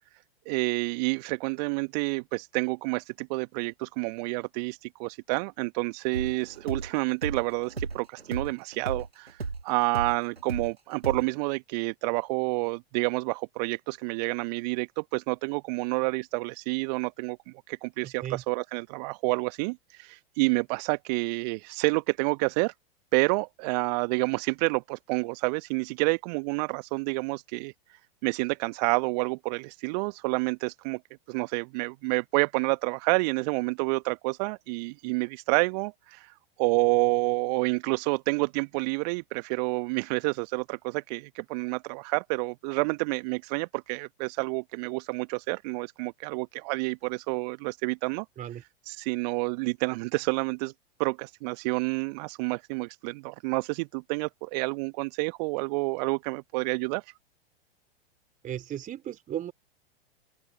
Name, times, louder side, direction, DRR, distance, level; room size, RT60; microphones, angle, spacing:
voice 1, 0.5-22.7 23.1-31.0 31.3-48.2 48.8-50.7 51.0-57.1, right 29 dB, 40° right, 1.1 m, -29 dB
sound 1, 6.1-10.7 11.0-11.3, right 4 dB, 85° right, 1.8 m, -35 dB
voice 2, 58.4-59.5, right 11 dB, 25° right, 4.0 m, -35 dB
open air
figure-of-eight pair, 95°, 30 cm